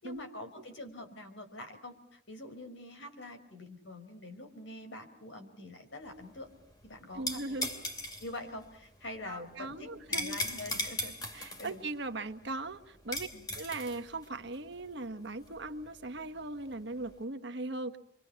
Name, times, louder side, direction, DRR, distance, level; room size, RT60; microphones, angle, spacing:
voice 1, 0.0-6.5 6.8-7.4 8.2-11.8 13.3-13.5, left 2 dB, 70° left, 6 dB, 4.5 m, -45 dB
sound 1, 6.0-17.1, left 1 dB, 20° left, 2.7 m, -39 dB
voice 2, 7.1-7.7 9.2-10.4 11.3-13.3 13.5-18.0, right 2 dB, 60° right, 7 dB, 1.4 m, -39 dB
29.5 x 24.0 x 5.8 m, 0.64 s
head